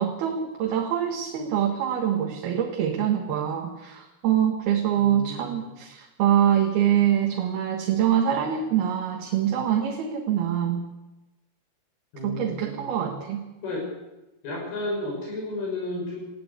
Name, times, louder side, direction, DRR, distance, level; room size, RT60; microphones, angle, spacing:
voice 1, 0.0-10.8 12.2-13.4, right 9 dB, 75° right, 2 dB, 3.5 m, -24 dB
voice 2, 5.0-5.7 12.1-12.9 13.6-13.8 14.4-16.2, left 2 dB, 70° left, -1 dB, 7.7 m, -32 dB
20.0 x 16.0 x 8.4 m, 1.0 s
omnidirectional pair, 4.5 m